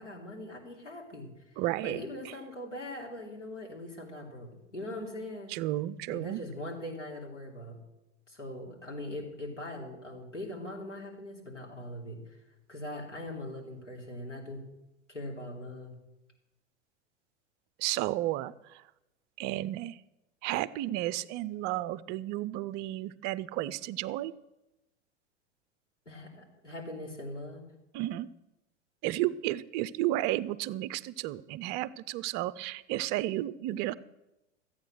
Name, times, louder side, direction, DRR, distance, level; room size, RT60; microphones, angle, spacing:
voice 1, 0.0-1.3 1.8-5.5 6.1-7.8 8.3-12.4 12.7-14.6 15.1-15.9 26.0-27.6, left 1 dB, 90° left, -2 dB, 3.1 m, -41 dB
voice 2, 1.6-2.0 5.5-6.4 17.8-18.8 19.4-20.0 20.4-24.3 27.9-28.3 29.0-33.9, right 15 dB, 30° right, 17 dB, 0.5 m, -32 dB
14.0 x 8.6 x 6.2 m, 0.95 s
figure-of-eight pair, 90°, 35 cm